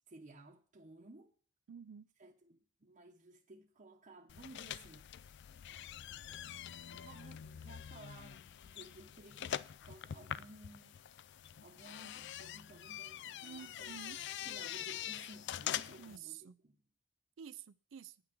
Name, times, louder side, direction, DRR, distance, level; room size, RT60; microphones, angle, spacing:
voice 1, 0.1-1.3 2.2-5.5 6.9-11.0 11.6-16.8, right 2 dB, 40° right, 0.9 m, -57 dB
voice 2, 1.7-2.1 13.4-14.2 16.0-16.5 17.4-18.2, right 8 dB, 70° right, 0.4 m, -50 dB
sound 1, 4.3-16.2, left 10 dB, 60° left, 0.4 m, -45 dB
9.8 x 6.0 x 7.7 m
head